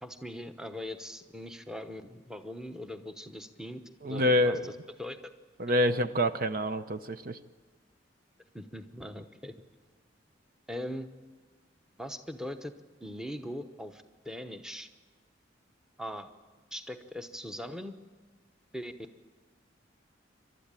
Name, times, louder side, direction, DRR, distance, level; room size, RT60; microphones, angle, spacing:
voice 1, 0.0-4.6 5.0-5.2 8.5-9.5 10.7-11.1 12.0-12.7 13.0-14.9 16.0-16.3 16.7-18.0 18.7-18.9, equal, 5° right, 8 dB, 1.0 m, -40 dB
voice 2, 4.0-4.7 5.6-7.4, left 1 dB, 50° right, 10 dB, 0.7 m, -27 dB
28.5 x 13.0 x 8.9 m, 1.4 s
head